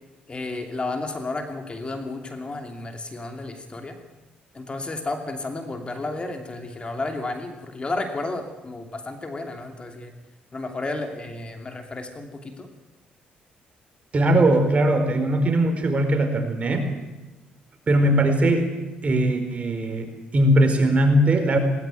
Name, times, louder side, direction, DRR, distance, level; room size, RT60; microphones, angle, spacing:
voice 1, 0.3-4.0 4.5-10.1 10.5-12.7, left 2 dB, 30° left, 5 dB, 2.7 m, -32 dB
voice 2, 14.1-16.9 17.9-18.7 19.0-21.6, right 1 dB, 35° right, 6 dB, 4.5 m, -20 dB
18.5 x 18.5 x 9.2 m, 1.1 s
cardioid pair, 85°, 4 cm